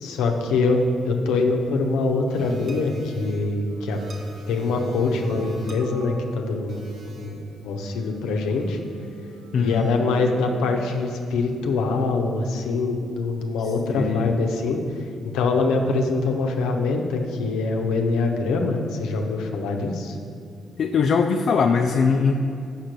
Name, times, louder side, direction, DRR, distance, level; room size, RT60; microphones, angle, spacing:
voice 1, 0.0-4.0 4.5-6.8 7.0-7.4 7.6-8.8 9.6-20.2, left 3 dB, 80° left, 3 dB, 0.7 m, -24 dB
sound 1, 2.3-10.9, right 2 dB, 70° right, 1.0 m, -39 dB
voice 2, 9.5-9.9 13.9-14.4 20.8-22.3, left 5 dB, 60° left, 4 dB, 0.3 m, -21 dB
5.6 x 5.1 x 6.0 m, 2.6 s
hypercardioid pair, 50°, 0 cm